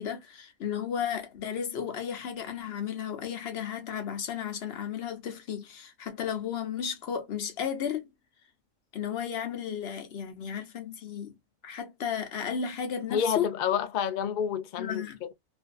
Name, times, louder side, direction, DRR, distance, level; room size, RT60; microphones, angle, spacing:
voice 1, 0.0-8.1 8.9-11.4 11.6-13.5 14.8-15.2, left 8 dB, 60° left, 0.8 m, -34 dB
voice 2, 13.1-15.3, left 8 dB, 80° left, 0.4 m, -29 dB
2.6 x 2.4 x 2.4 m
omnidirectional pair, 1.4 m